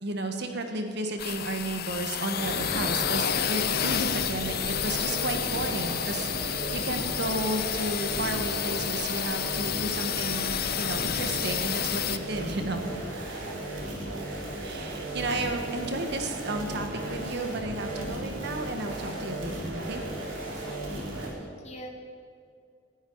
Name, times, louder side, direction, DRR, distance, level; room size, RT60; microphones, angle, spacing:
voice 1, 0.0-13.6 14.6-20.0, right 2 dB, 60° right, 5 dB, 1.5 m, -33 dB
sound 1, 1.2-12.2, left 10 dB, 55° left, 0.6 m, -30 dB
sound 2, 2.4-21.3, right 1 dB, 80° right, 3.7 m, -35 dB
voice 2, 6.5-6.9 13.4-13.9 20.6-21.0 21.4-21.9, left 1 dB, 35° left, 2 dB, 1.9 m, -44 dB
18.5 x 12.0 x 4.8 m, 2.2 s
head